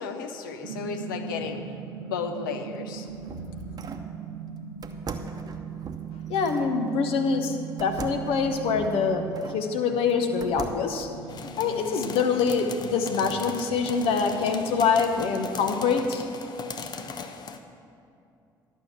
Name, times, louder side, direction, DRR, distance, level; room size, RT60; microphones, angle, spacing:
voice 1, 0.0-3.1 3.3-3.4, left 5 dB, 75° left, 6 dB, 0.7 m, -34 dB
sound 1, 0.6-17.1, right 7 dB, 75° right, 0.7 m, -40 dB
sound 2, 2.7-4.1 4.8-6.7 7.8-9.6 10.1-11.0, right 4 dB, 35° right, 0.8 m, -40 dB
voice 2, 6.3-11.1 11.4-16.2, left 5 dB, 55° left, 6 dB, 1.0 m, -25 dB
sound 3, 11.3-17.6, left 5 dB, 40° left, 0.8 m, -39 dB
11.5 x 6.3 x 7.2 m, 2.6 s
figure-of-eight pair, 55°, 11 cm